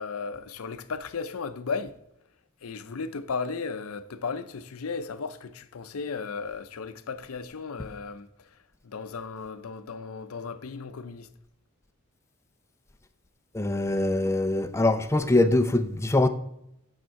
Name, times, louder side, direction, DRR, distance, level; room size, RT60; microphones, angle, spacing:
voice 1, 0.0-1.9 2.6-8.3 8.8-11.3, left 5 dB, 90° left, 0.6 m, -35 dB
voice 2, 13.5-16.3, left 2 dB, 15° left, 0.4 m, -23 dB
8.8 x 6.6 x 4.6 m
head